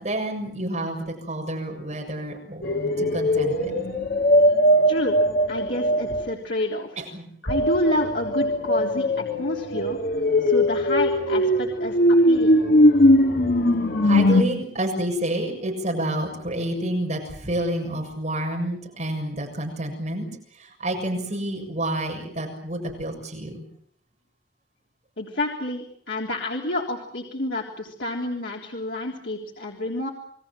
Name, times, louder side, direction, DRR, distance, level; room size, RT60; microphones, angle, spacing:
voice 1, 0.0-3.8 7.0-7.3 14.0-20.3 20.6-23.6, right 1 dB, 40° right, 2 dB, 7.0 m, -29 dB
sound 1, 2.6-6.3 7.5-14.4, equal, 60° left, 2.2 m, -20 dB
voice 2, 4.9-5.2 5.5-7.0 7.4-10.0 10.4-12.7 25.2-30.1, left 1 dB, 85° left, -1 dB, 3.5 m, -29 dB
29.5 x 21.0 x 7.6 m, 0.63 s
head